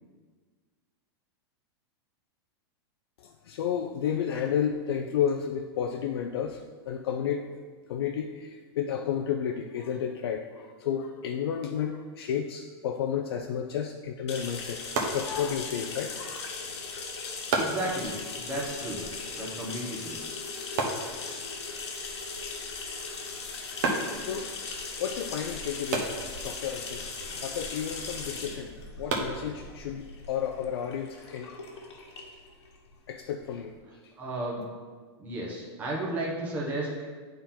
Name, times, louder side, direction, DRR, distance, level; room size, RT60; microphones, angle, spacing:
voice 1, 3.2-7.5 7.9-14.8 15.1-16.5 24.2-24.5 25.0-26.2 26.4-27.1 27.4-31.6 33.1-33.7, left 8 dB, 65° left, 5 dB, 0.4 m, -32 dB
sound 1, 14.2-30.1, right 3 dB, 45° right, 0.9 m, -37 dB
sound 2, 14.3-33.7, left 4 dB, 90° left, 1.3 m, -39 dB
voice 2, 17.6-19.0 19.4-20.2 34.2-34.6 35.2-36.9, right 1 dB, 10° right, -5 dB, 0.9 m, -33 dB
9.1 x 3.8 x 4.3 m, 1.5 s
supercardioid pair, 175°, 14 cm